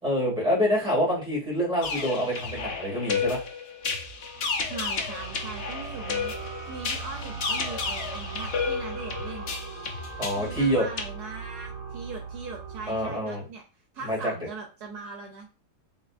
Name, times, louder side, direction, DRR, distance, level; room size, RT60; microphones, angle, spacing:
voice 1, 0.0-3.4 10.2-10.8 12.9-13.4 14.0-14.3, equal, 5° right, -5 dB, 1.8 m, -26 dB
sound 1, 1.8-11.0, left 5 dB, 75° left, 0.5 m, -32 dB
sound 2, 3.8-13.2, right 5 dB, 40° left, 1.9 m, -39 dB
voice 2, 4.6-6.3 6.7-9.6 10.2-13.6 13.9-15.7, right 4 dB, 70° right, 2 dB, 1.1 m, -40 dB
3.8 x 3.3 x 2.4 m, 0.34 s
omnidirectional pair, 1.8 m